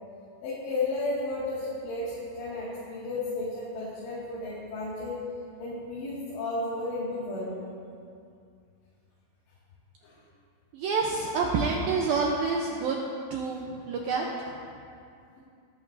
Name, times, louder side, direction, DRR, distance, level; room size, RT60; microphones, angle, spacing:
voice 1, 0.4-5.2 5.6-7.6 10.0-10.1, left 2 dB, 65° left, -9 dB, 4.4 m, -33 dB
voice 2, 10.7-13.0 13.3-14.3, right 4 dB, 85° right, -1 dB, 2.1 m, -28 dB
22.0 x 11.5 x 2.7 m, 2.4 s
omnidirectional pair, 5.4 m